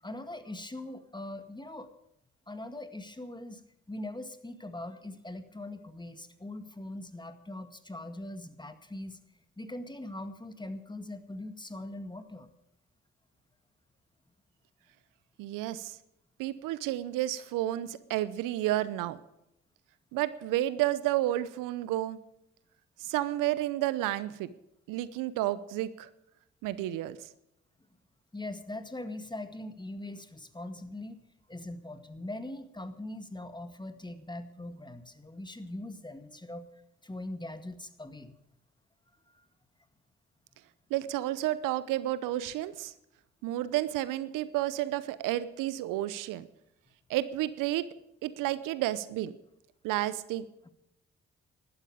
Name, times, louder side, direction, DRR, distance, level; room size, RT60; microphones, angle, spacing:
voice 1, 0.0-1.9 2.5-3.6 3.9-9.2 9.6-12.5 28.3-31.2 31.5-36.7 37.0-38.3 39.3-39.4 50.6-50.7, left 1 dB, 15° left, 10 dB, 2.0 m, -41 dB
voice 2, 15.4-16.0 16.4-19.2 20.1-22.2 23.0-24.5 24.9-26.1 26.6-27.2 40.9-42.9 43.4-46.5 47.1-47.9 48.2-49.3 49.8-50.4, right 14 dB, 75° right, 16 dB, 0.8 m, -31 dB
15.5 x 12.0 x 5.0 m, 0.82 s
hypercardioid pair, 40°, 32 cm